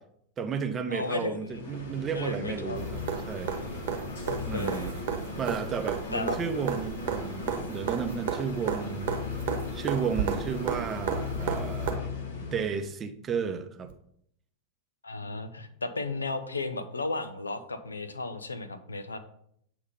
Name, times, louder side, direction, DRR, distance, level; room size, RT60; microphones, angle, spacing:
voice 1, 0.4-3.5 4.5-5.0 5.4-9.1 9.7-12.1 12.4-13.9, right 6 dB, 25° right, 7 dB, 0.6 m, -33 dB
voice 2, 0.9-1.6 2.1-2.8 4.2-5.0 6.1-6.4 15.0-19.2, left 3 dB, 75° left, 9 dB, 0.6 m, -34 dB
sound 1, 1.5-12.9, left 4 dB, 60° left, 1.2 m, -37 dB
sound 2, 2.8-11.9 13.9-14.0, right 7 dB, 55° right, 1.0 m, -34 dB
8.1 x 2.9 x 5.3 m, 0.71 s
figure-of-eight pair, 90°, 0 cm